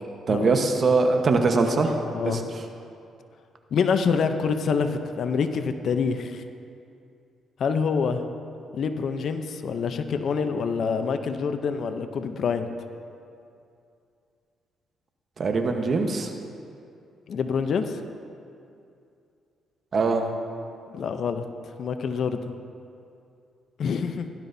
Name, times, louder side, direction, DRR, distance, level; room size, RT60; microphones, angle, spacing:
voice 1, 0.3-2.4 15.4-16.3 19.9-20.3, right 3 dB, 45° right, 4 dB, 1.1 m, -22 dB
voice 2, 3.7-6.4 7.6-8.2 8.7-12.7 17.3-18.0 20.9-21.4 21.8-22.4 23.8-24.3, left 5 dB, 60° left, 8 dB, 0.6 m, -26 dB
16.5 x 11.5 x 2.7 m, 2.5 s
cardioid pair, 90°, 0 cm